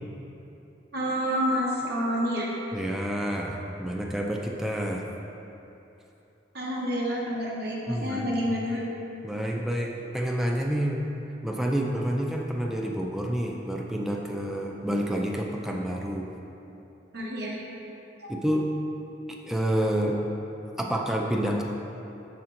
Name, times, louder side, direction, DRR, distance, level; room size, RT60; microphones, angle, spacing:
voice 1, 0.9-2.5 6.5-8.8 17.1-17.6 18.2-18.3, equal, 60° right, -4 dB, 1.0 m, -28 dB
voice 2, 2.7-5.1 7.9-8.6 9.2-11.0 11.4-16.3 18.3-18.7 19.4-20.2 20.8-21.6, equal, ahead, -1 dB, 0.3 m, -28 dB
6.7 x 4.3 x 3.7 m, 2.9 s
head